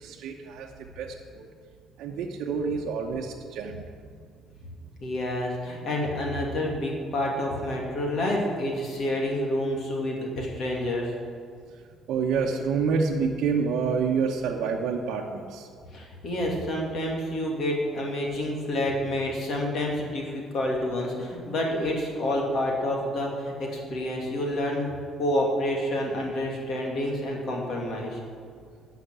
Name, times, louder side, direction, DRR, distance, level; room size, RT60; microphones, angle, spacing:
voice 1, 0.0-0.7 1.0-1.1 1.4-1.5 2.0-3.9 12.1-15.7, right 5 dB, 70° right, -1 dB, 0.9 m, -27 dB
voice 2, 5.0-11.1 15.9-24.9 25.2-28.2, left 1 dB, 45° left, -1 dB, 2.5 m, -28 dB
12.5 x 5.9 x 8.9 m, 2.2 s
cardioid pair, 165°, 0 cm